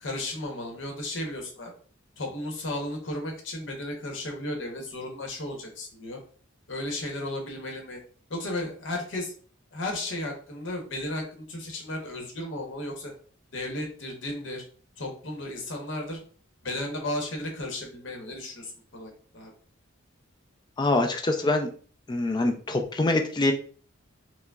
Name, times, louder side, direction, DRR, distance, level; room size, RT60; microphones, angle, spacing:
voice 1, 0.0-1.7 2.2-6.2 6.7-8.0 8.3-9.4 9.7-13.1 13.5-14.6 15.0-16.2 16.6-19.5, left 1 dB, 60° left, 1 dB, 0.9 m, -34 dB
voice 2, 20.8-21.7 22.1-23.5, left 2 dB, 20° left, 5 dB, 0.4 m, -24 dB
4.6 x 2.1 x 2.3 m, 0.42 s
head